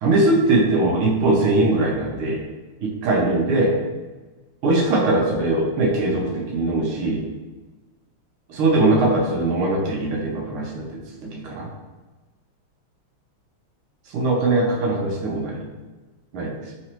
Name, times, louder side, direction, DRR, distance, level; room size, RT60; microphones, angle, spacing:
voice 1, 0.0-2.4 2.8-3.7 4.6-7.2 8.5-11.7 14.1-15.6 16.3-16.5, right 2 dB, 85° right, -2 dB, 1.6 m, -21 dB
5.1 x 3.1 x 2.9 m, 1.2 s
omnidirectional pair, 2.3 m